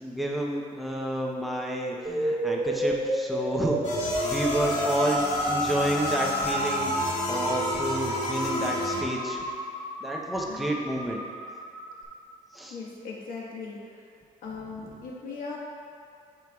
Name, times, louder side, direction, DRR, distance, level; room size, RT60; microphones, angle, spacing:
voice 1, 0.0-3.8 4.2-9.5 10.0-11.2 12.5-12.7, right 1 dB, ahead, -2 dB, 0.7 m, -30 dB
sound 1, 2.0-12.0, right 1 dB, 25° right, 1.1 m, -32 dB
sound 2, 3.8-9.0, left 1 dB, 50° left, 1.4 m, -30 dB
voice 2, 12.7-14.1 14.4-15.6, left 4 dB, 80° left, -3 dB, 1.4 m, -39 dB
13.5 x 4.6 x 2.3 m, 2.4 s
cardioid pair, 140°, 14 cm